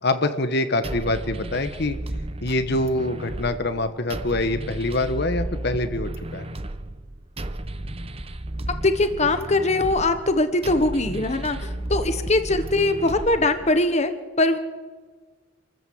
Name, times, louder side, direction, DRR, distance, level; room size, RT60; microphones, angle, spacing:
voice 1, 0.0-2.0 2.4-6.5, left 2 dB, 55° left, 9 dB, 1.3 m, -25 dB
sound 1, 0.8-13.9, right 1 dB, 30° right, 0.9 m, -33 dB
voice 2, 8.8-14.1 14.4-14.6, left 2 dB, 35° left, 9 dB, 1.3 m, -21 dB
28.0 x 14.0 x 7.9 m, 1.4 s
head